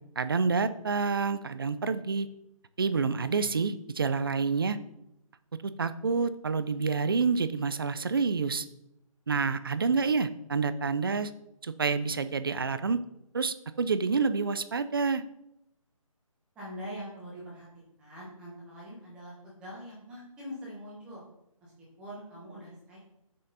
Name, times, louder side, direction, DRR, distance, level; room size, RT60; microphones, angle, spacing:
voice 1, 0.2-2.3 2.8-4.8 5.6-8.7 9.3-11.3 11.6-13.0 13.3-15.2, right 4 dB, 40° right, 13 dB, 0.4 m, -28 dB
voice 2, 16.5-17.7 18.0-21.2 21.6-21.7 22.0-23.0, equal, 5° right, -6 dB, 1.1 m, -43 dB
6.5 x 5.6 x 4.0 m, 0.82 s
hypercardioid pair, 175°, 18 cm